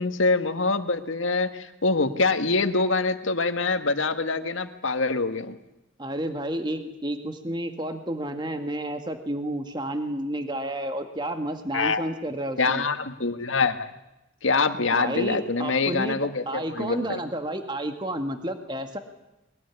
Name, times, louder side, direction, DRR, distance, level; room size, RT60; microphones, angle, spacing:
voice 1, 0.0-5.6 11.7-12.0 12.6-13.9 14.4-17.2, left 3 dB, 85° left, 8 dB, 1.7 m, -25 dB
voice 2, 6.0-12.8 15.0-16.2 16.5-19.0, right 1 dB, 25° right, 6 dB, 1.9 m, -31 dB
22.5 x 20.5 x 9.7 m, 0.95 s
head